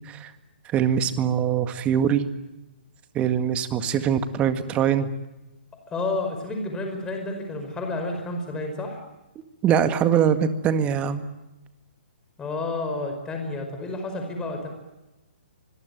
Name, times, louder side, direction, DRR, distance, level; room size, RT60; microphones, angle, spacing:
voice 1, 0.7-2.2 3.1-5.1 9.6-11.2, right 8 dB, 20° right, 10 dB, 1.9 m, -22 dB
voice 2, 5.9-9.0 12.4-14.7, left 2 dB, 15° left, 4 dB, 5.2 m, -30 dB
25.5 x 21.5 x 9.3 m, 1.0 s
figure-of-eight pair, 130°, 6 cm